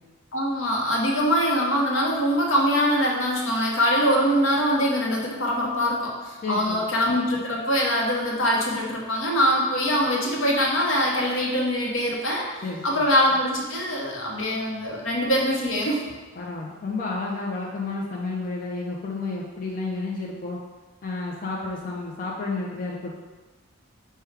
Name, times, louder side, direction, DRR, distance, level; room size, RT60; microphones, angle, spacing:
voice 1, 0.3-16.0, equal, 80° left, -2 dB, 0.9 m, -23 dB
voice 2, 6.4-6.9 12.6-13.0 16.4-20.6 21.0-23.2, left 3 dB, 40° left, -3 dB, 0.4 m, -31 dB
4.7 x 2.2 x 4.6 m, 1.2 s
head